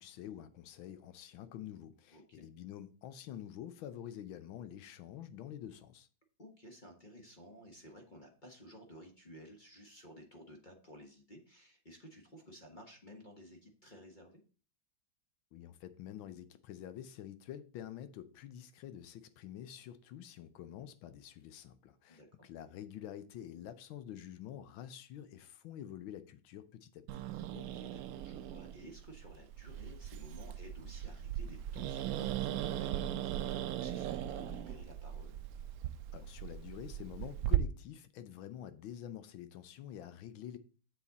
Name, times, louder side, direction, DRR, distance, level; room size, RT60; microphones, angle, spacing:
voice 1, 0.0-6.1 15.5-27.2 36.1-40.6, left 10 dB, 90° left, 1.5 m, -48 dB
voice 2, 2.1-2.5 6.4-14.4 22.1-22.5 27.5-35.4, equal, 30° left, 1.2 m, -54 dB
Growling, 27.1-37.6, right 12 dB, 90° right, 0.8 m, -38 dB
7.3 x 7.1 x 4.0 m
omnidirectional pair, 2.1 m